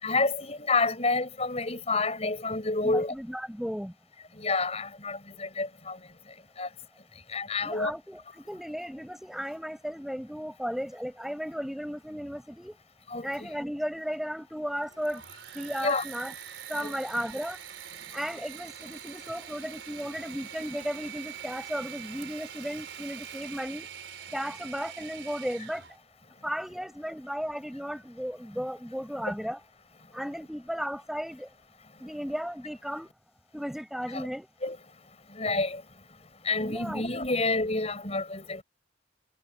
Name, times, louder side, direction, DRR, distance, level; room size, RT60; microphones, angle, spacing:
voice 1, 0.0-3.1 4.4-6.0 6.6-6.7 7.3-7.9 13.1-13.5 15.8-16.0 16.8-16.9 34.1-34.3 34.6-34.8 35.3-35.8 36.4-38.6, left 3 dB, 35° left, 6.6 m, -29 dB
voice 2, 2.8-3.9 7.6-12.8 13.2-15.2 15.5-16.3 16.7-17.6 18.1-23.9 24.3-25.8 26.4-29.6 30.1-31.5 32.0-33.1 33.5-34.5 36.6-37.0, equal, ahead, 6.7 m, -35 dB
Engine / Mechanisms, 14.8-26.0, right 9 dB, 80° right, 3.9 m, -44 dB
head